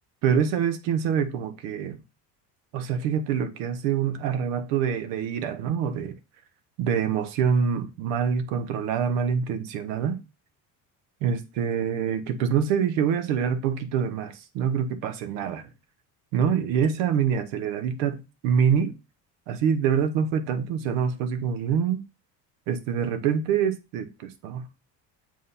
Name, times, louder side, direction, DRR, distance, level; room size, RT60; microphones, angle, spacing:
voice 1, 0.2-2.0 2.7-6.1 6.8-10.2 11.2-15.7 16.3-18.9 19.5-22.0 22.7-24.7, right 7 dB, 75° right, 1.1 m, -25 dB
7.5 x 2.9 x 5.6 m
hypercardioid pair, 70°, 46 cm